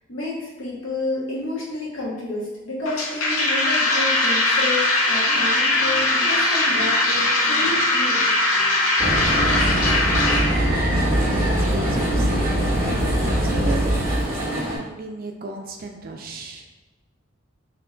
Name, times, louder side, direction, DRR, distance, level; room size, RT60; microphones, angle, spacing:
voice 1, 0.1-8.2, left 2 dB, 65° left, -5 dB, 1.1 m, -30 dB
sound 1, 2.9-10.5, left 2 dB, 85° left, 0.7 m, -20 dB
sound 2, 5.2-13.4, equal, 35° left, 1.0 m, -38 dB
sound 3, 9.0-14.8, right 1 dB, 15° right, 0.8 m, -22 dB
voice 2, 9.3-10.3 10.6-12.7 13.0-16.7, right 2 dB, 40° right, 2 dB, 0.4 m, -37 dB
3.4 x 2.8 x 3.7 m, 1.1 s
head